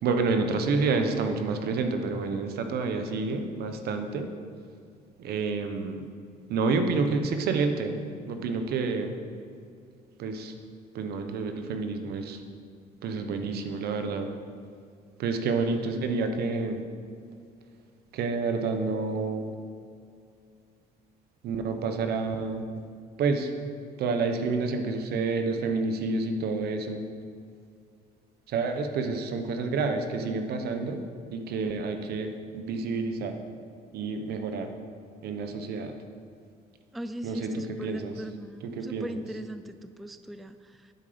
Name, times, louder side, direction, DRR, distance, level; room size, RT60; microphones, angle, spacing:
voice 1, 0.0-4.3 5.2-6.1 6.5-8.0 8.3-9.2 10.2-10.5 10.9-12.4 13.0-14.3 15.2-16.8 18.1-19.5 21.4-22.8 23.2-23.5 24.0-27.1 28.5-31.1 31.3-33.4 33.9-34.7 35.2-35.9 37.2-38.1 38.6-39.1, right 4 dB, 70° right, 6 dB, 1.1 m, -29 dB
voice 2, 36.9-40.9, right 1 dB, ahead, 11 dB, 0.3 m, -39 dB
9.8 x 7.8 x 5.1 m, 2.3 s
cardioid pair, 110°, 17 cm